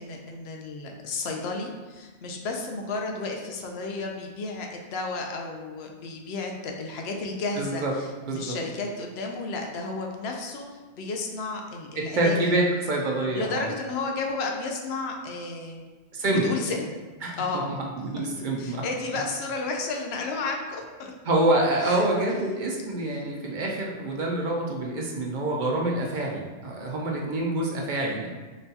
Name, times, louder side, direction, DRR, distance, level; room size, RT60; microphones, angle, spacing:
voice 1, 0.0-12.4 13.3-15.9 16.3-17.0 17.4-17.7 18.6-21.1 21.8-22.1 23.2-23.3, left 3 dB, 65° left, 2 dB, 0.8 m, -32 dB
voice 2, 7.6-7.9 8.3-8.6 12.0-13.7 16.1-16.5 17.2-18.8 21.2-28.3, right 1 dB, 55° right, -1 dB, 0.5 m, -26 dB
5.1 x 2.2 x 2.7 m, 1.3 s
omnidirectional pair, 1.2 m